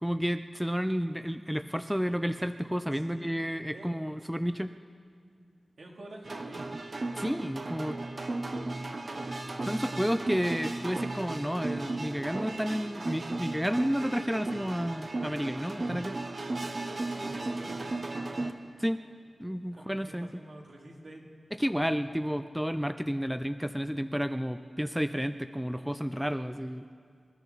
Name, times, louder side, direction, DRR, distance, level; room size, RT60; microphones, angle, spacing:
voice 1, 0.0-4.8 7.2-8.0 9.7-16.2 18.8-19.0 19.4-20.3 21.6-26.9, equal, ahead, 10 dB, 0.4 m, -31 dB
voice 2, 2.9-3.3 3.7-3.9 5.8-6.7 7.9-8.5 9.1-9.4 9.7-10.2 16.8-18.2 19.7-21.2, right 1 dB, 65° right, -1 dB, 2.5 m, -48 dB
sound 1, 6.2-18.5, right 2 dB, 45° right, 0.9 m, -35 dB
26.0 x 13.0 x 4.0 m, 2.2 s
wide cardioid pair, 105°, 0 cm